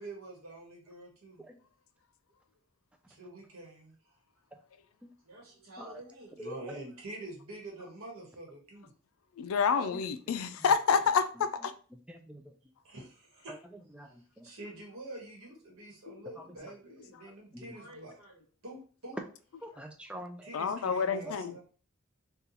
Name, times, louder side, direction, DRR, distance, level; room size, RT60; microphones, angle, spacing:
voice 1, 0.0-1.4 3.1-3.9 5.2-8.9 12.8-13.5 14.4-19.2 20.4-21.6, right 2 dB, 80° right, 1.2 m, -46 dB
voice 2, 6.4-6.8 9.8-10.7 11.3-11.5 11.9-12.5 13.5-14.5 16.4-16.5 17.2-17.8 19.6-21.3, right 1 dB, 5° right, 0.3 m, -47 dB
voice 3, 9.4-11.7 16.1-16.2 20.5-21.6, left 6 dB, 80° left, 0.4 m, -28 dB
2.8 x 2.3 x 3.9 m
head